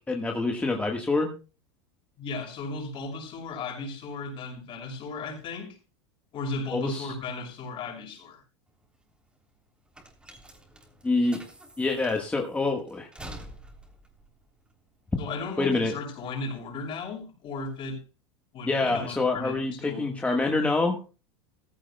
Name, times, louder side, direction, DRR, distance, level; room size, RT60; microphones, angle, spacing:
voice 1, 0.1-1.3 6.7-7.1 11.0-11.4 11.8-13.1 15.6-16.0 18.7-21.1, left 3 dB, 10° left, 1.5 m, -26 dB
voice 2, 2.2-5.8 6.3-8.4 15.2-18.0 18.5-20.1, left 3 dB, 40° left, 6.0 m, -36 dB
sound 1, 8.7-15.5, right 1 dB, 5° right, 3.3 m, -48 dB
15.0 x 15.0 x 2.3 m
supercardioid pair, 115°, 14 cm